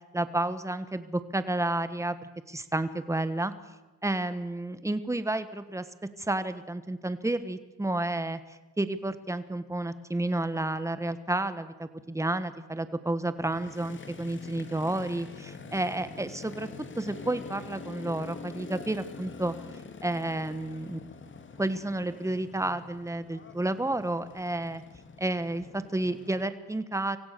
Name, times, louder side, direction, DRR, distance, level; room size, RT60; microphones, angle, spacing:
voice 1, 0.1-2.2 2.5-3.5 4.0-5.8 6.2-8.4 8.8-19.5 20.0-21.0 21.6-24.8 25.2-27.2, right 2 dB, 10° right, 12 dB, 1.5 m, -31 dB
Motorcycle, 13.4-26.4, left 5 dB, 40° left, 2.1 m, -45 dB
25.0 x 16.0 x 6.9 m, 1.1 s
cardioid pair, 90°, 30 cm